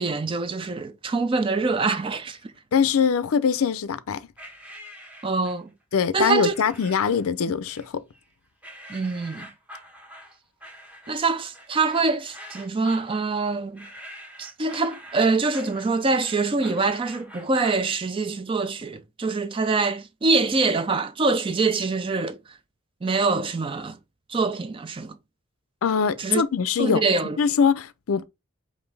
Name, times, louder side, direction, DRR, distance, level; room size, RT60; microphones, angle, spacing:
voice 1, 0.0-2.5 5.2-5.7 6.1-6.5 8.9-9.5 11.1-13.9 14.4-22.4 23.0-24.0 24.3-25.2 26.2-26.4 26.8-27.4, right 3 dB, 25° right, 0.3 m, -24 dB
voice 2, 2.7-4.2 5.9-8.0 25.8-27.0 27.4-28.3, left 6 dB, 75° left, 0.4 m, -22 dB
sound 1, 4.4-5.7 6.5-7.3 7.7-8.3 8.6-17.9, equal, 5° right, 0.9 m, -45 dB
5.2 x 2.6 x 3.3 m
head